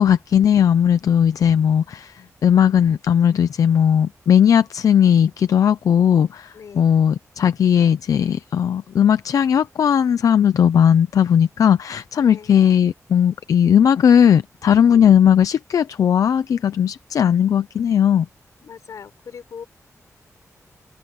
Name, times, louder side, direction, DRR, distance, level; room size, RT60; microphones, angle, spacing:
voice 1, 0.0-2.1 2.4-18.3, left 8 dB, 90° left, 0.6 m, -17 dB
voice 2, 6.5-6.9 12.2-12.5 18.6-19.6, left 6 dB, 70° left, 4.5 m, -39 dB
wide cardioid pair, 175°, 6 cm